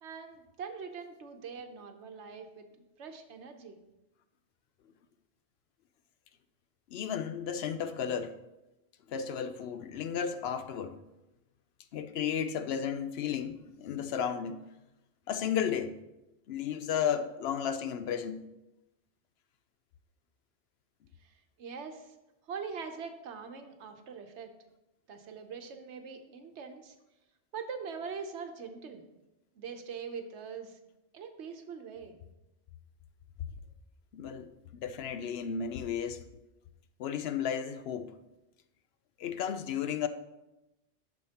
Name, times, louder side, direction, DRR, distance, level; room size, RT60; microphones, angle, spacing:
voice 1, 0.0-2.7 3.0-3.8 21.2-22.1 22.4-24.5 25.1-27.0 27.5-29.0 29.5-30.8 31.1-32.2, right 6 dB, 80° right, 1.1 m, -43 dB
voice 2, 6.9-8.4 9.1-11.0 11.9-14.6 15.3-15.9 16.5-18.4 34.1-36.2 37.0-38.1 39.2-40.1, left 8 dB, 70° left, 0.8 m, -33 dB
11.0 x 6.4 x 2.9 m
omnidirectional pair, 1.2 m